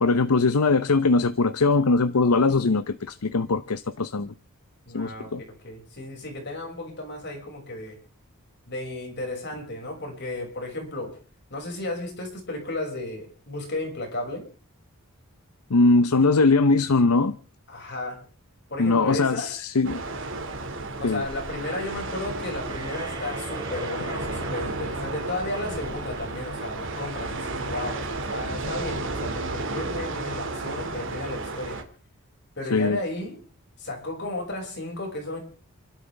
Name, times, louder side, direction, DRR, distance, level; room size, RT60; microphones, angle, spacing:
voice 1, 0.0-4.3 4.9-5.4 15.7-17.4 18.8-20.0 21.0-21.2 32.7-33.0, left 3 dB, 90° left, 0.8 m, -21 dB
voice 2, 4.9-5.3 5.6-8.0 8.7-11.2 11.5-14.4 17.7-18.2 18.7-19.5 21.0-31.8 32.6-33.4 33.8-35.4, left 2 dB, 50° left, 6.1 m, -34 dB
sound 1, 19.8-31.8, right 2 dB, 60° right, 2.3 m, -33 dB
sound 2, 22.6-27.4, right 2 dB, 20° right, 1.8 m, -42 dB
29.5 x 12.5 x 3.4 m
head